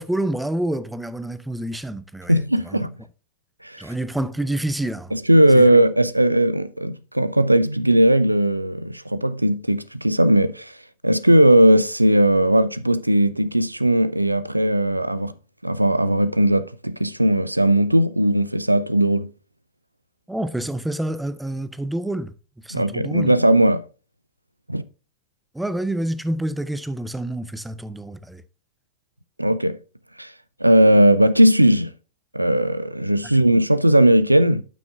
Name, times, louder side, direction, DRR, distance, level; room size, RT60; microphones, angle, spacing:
voice 1, 0.0-2.4 2.7-2.9 3.8-5.1 5.5-5.8 20.3-22.3 22.6-23.3 25.5-28.4 33.2-33.4, right 1 dB, 5° right, 0.6 m, -28 dB
voice 2, 2.3-2.9 3.6-3.9 5.1-10.7 11.0-15.3 15.6-19.3 22.7-23.8 24.7-24.8 29.4-29.8 30.2-30.3 30.6-31.9 32.3-34.6, right 1 dB, 85° right, 0.3 m, -18 dB
12.5 x 6.0 x 2.4 m
figure-of-eight pair, 90°, 0 cm